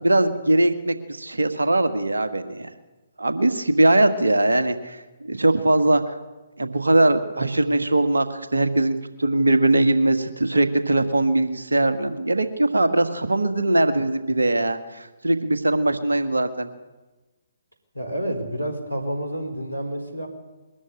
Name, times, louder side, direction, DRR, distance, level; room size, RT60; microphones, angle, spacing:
voice 1, 0.0-2.7 3.2-6.1 6.6-16.7, right 2 dB, 75° right, 9 dB, 1.7 m, -21 dB
voice 2, 17.9-20.3, right 1 dB, 90° left, 7 dB, 4.5 m, -29 dB
21.5 x 13.5 x 9.9 m, 1.2 s
figure-of-eight pair, 135°, 0 cm